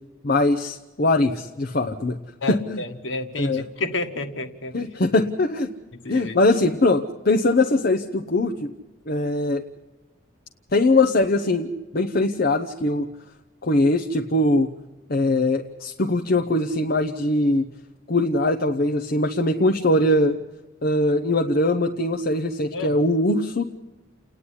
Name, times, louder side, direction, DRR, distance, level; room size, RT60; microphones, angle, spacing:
voice 1, 0.2-2.2 2.5-2.8 3.4-3.6 4.7-5.7 6.1-8.7 9.1-9.6 10.7-13.1 13.6-14.7 15.1-17.7 18.1-20.4 20.8-23.7, left 2 dB, 50° left, 5 dB, 0.8 m, -21 dB
voice 2, 2.4-4.7 6.0-6.3 22.7-22.9, left 2 dB, 70° left, 6 dB, 1.7 m, -30 dB
29.5 x 9.8 x 10.0 m, 1.1 s
head